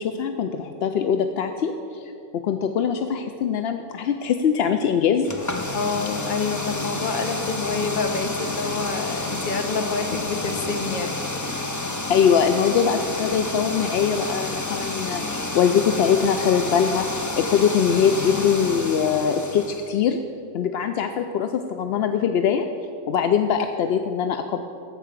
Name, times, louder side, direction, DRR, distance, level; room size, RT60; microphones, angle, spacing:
voice 1, 0.0-5.3 12.1-20.2 20.5-22.7 23.1-24.6, left 7 dB, 65° left, 7 dB, 0.6 m, -22 dB
sound 1, 5.2-19.9, left 2 dB, 25° left, 0.4 m, -30 dB
voice 2, 5.7-11.2 23.5-23.6, left 4 dB, 40° left, 6 dB, 0.9 m, -27 dB
14.0 x 4.9 x 8.2 m, 2.8 s
omnidirectional pair, 1.5 m